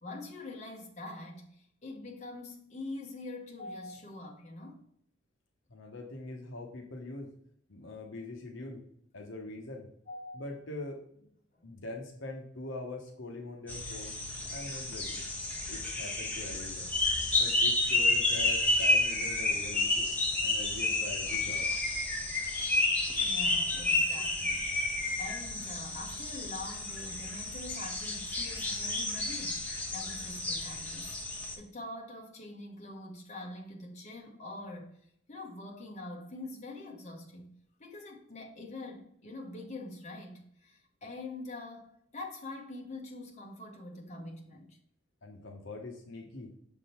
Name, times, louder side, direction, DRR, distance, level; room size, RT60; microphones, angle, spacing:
voice 1, 0.0-4.8 7.8-7.9 10.1-10.4 11.5-11.6 23.2-24.7 25.2-31.1 31.6-35.0 35.3-44.8, left 2 dB, 35° left, 1.1 m, -44 dB
voice 2, 5.7-7.3 7.7-8.8 9.1-9.9 10.3-11.3 11.6-14.2 14.5-15.3 15.7-16.9 17.4-20.1 20.4-21.7 45.2-46.5, left 2 dB, 65° left, 0.9 m, -43 dB
sound 1, 13.7-31.5, left 2 dB, 10° left, 1.2 m, -31 dB
6.5 x 3.7 x 4.3 m
head